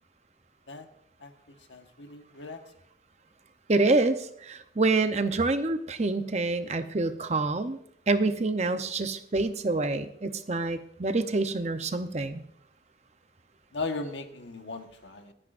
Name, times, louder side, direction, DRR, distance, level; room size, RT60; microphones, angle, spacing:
voice 1, 1.7-2.6 13.7-15.3, left 3 dB, 85° left, 1.3 m, -37 dB
voice 2, 3.7-7.8 8.1-12.4, right 3 dB, 35° right, 0.7 m, -27 dB
26.0 x 9.6 x 2.5 m
head